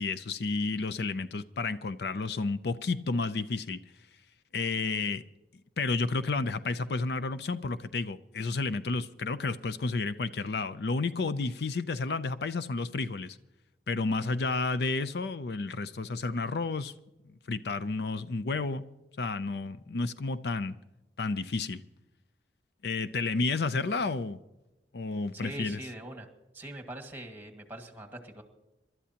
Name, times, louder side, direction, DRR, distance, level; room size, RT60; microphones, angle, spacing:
voice 1, 0.0-3.8 4.5-5.2 5.8-13.4 13.9-16.9 17.5-18.8 19.2-20.8 21.2-21.8 22.8-24.4 24.9-25.8, left 3 dB, 65° left, 14 dB, 0.5 m, -31 dB
voice 2, 25.3-26.3 26.5-28.4, right 1 dB, 10° right, 4 dB, 1.8 m, -42 dB
26.5 x 12.5 x 2.9 m, 1.0 s
head